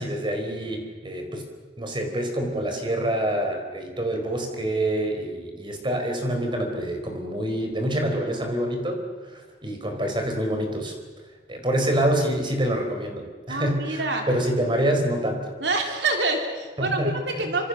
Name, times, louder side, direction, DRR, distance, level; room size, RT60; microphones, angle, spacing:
voice 1, 0.0-1.5 1.8-10.9 11.5-15.5 16.8-17.5, right 1 dB, 25° right, 4 dB, 4.5 m, -26 dB
voice 2, 13.5-14.3 15.6-17.7, right 2 dB, 80° right, 3 dB, 3.5 m, -26 dB
26.5 x 26.0 x 6.7 m, 1.4 s
head